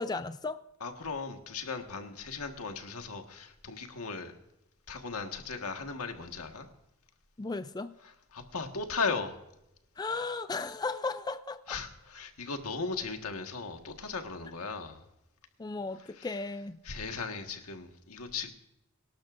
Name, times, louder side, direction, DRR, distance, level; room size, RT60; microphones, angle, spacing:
voice 1, 0.0-0.6 7.4-7.9 10.0-11.8 15.6-16.8, left 3 dB, 20° left, 0.4 m, -35 dB
voice 2, 0.8-4.4 4.9-6.7 8.0-9.4 11.7-15.0 15.9-16.4 16.8-18.5, left 4 dB, 85° left, 1.6 m, -37 dB
24.0 x 12.0 x 2.6 m
head